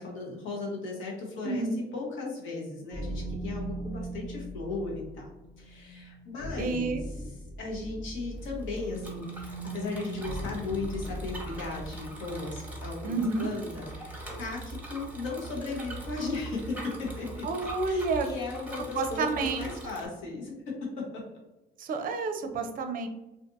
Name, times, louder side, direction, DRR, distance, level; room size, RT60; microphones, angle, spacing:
voice 1, 0.0-1.7 1.9-5.2 5.6-17.4 17.9-20.5 21.0-21.2, left 3 dB, 75° left, -2 dB, 1.0 m, -36 dB
sound 1, 2.9-12.1, right 1 dB, 35° left, 0.7 m, -39 dB
voice 2, 6.6-7.0 13.0-13.5 17.4-18.3 18.9-19.7 21.8-23.1, right 3 dB, 45° right, 6 dB, 0.5 m, -30 dB
Bicycle, 8.3-20.1, right 2 dB, 10° right, 0.8 m, -42 dB
2.5 x 2.5 x 2.5 m, 1.0 s
supercardioid pair, 85°, 20 cm